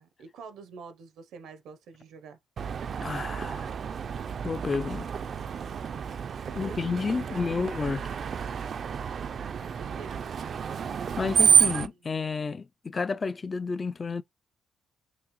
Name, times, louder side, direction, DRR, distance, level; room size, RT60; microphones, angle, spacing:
voice 1, 0.0-2.4 6.5-7.6 9.6-10.2 11.7-11.9, right 5 dB, 80° right, 0.7 m, -47 dB
Screech, 2.6-11.9, right 7 dB, 55° right, 0.3 m, -29 dB
voice 2, 3.0-3.7 4.4-5.1 6.5-8.1 11.2-14.2, left 4 dB, 35° left, 0.3 m, -31 dB
5.9 x 2.0 x 3.0 m
cardioid pair, 90°, 0 cm